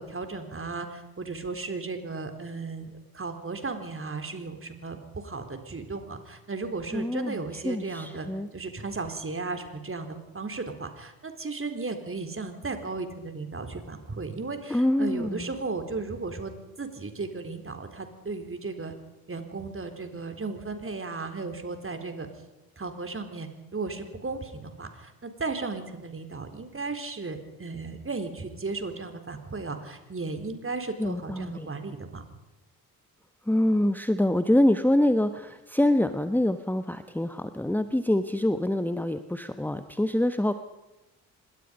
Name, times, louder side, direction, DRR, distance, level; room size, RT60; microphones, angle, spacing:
voice 1, 0.0-8.3 8.5-16.5 16.8-18.9 19.3-22.3 22.8-32.2, right 3 dB, 30° right, 7 dB, 4.3 m, -35 dB
voice 2, 6.9-8.5 14.7-15.5 31.0-31.7 33.5-40.5, left 1 dB, 5° left, 10 dB, 1.3 m, -25 dB
27.0 x 21.0 x 5.4 m, 1.0 s
hypercardioid pair, 45°, 45 cm